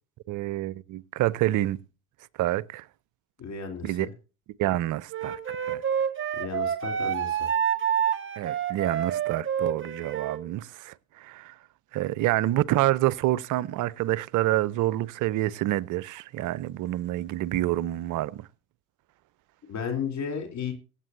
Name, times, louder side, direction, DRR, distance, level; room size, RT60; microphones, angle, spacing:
voice 1, 0.3-1.8 2.4-2.8 3.8-4.1 4.6-5.8 8.4-11.5 11.9-18.5, right 15 dB, 45° right, 0.6 m, -27 dB
voice 2, 3.4-4.1 6.4-7.5 19.7-20.7, left 6 dB, 40° left, 3.3 m, -33 dB
Wind instrument woodwind instrument, 5.1-10.4, right 8 dB, 25° right, 1.6 m, -28 dB
23.5 x 8.1 x 2.7 m
hypercardioid pair, 70°, 45 cm